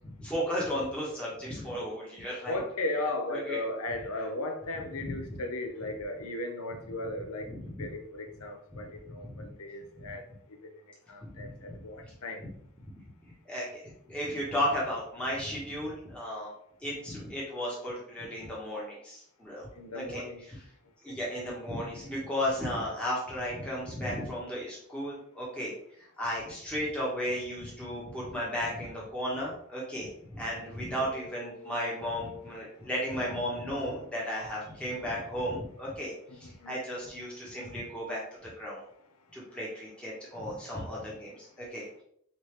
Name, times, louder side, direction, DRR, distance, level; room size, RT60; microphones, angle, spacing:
voice 1, 0.0-2.6 3.3-3.6 5.0-5.2 7.4-7.9 9.1-9.5 10.0-10.1 11.2-12.1 13.4-16.5 16.8-19.7 19.9-20.7 21.0-38.8 39.3-41.9, equal, 5° left, 1.0 m, -35 dB
voice 2, 2.5-7.5 7.8-10.2 10.5-10.8 11.1-12.4 19.8-20.4 21.1-21.2 31.4-32.5 36.6-36.7, left 2 dB, 80° left, 0.7 m, -36 dB
4.0 x 3.3 x 3.2 m
head